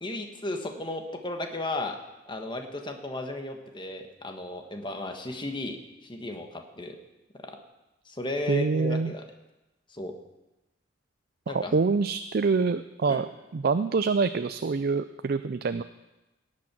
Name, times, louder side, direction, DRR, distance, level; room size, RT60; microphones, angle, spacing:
voice 1, 0.0-2.0 2.3-7.0 7.4-7.6 8.1-9.2 9.9-10.1 11.5-11.8 13.1-13.2, left 2 dB, 25° left, 4 dB, 1.3 m, -35 dB
voice 2, 8.5-9.1 11.5-13.3 13.5-15.8, right 4 dB, 55° right, 11 dB, 0.4 m, -26 dB
18.0 x 8.6 x 6.0 m, 1.0 s
head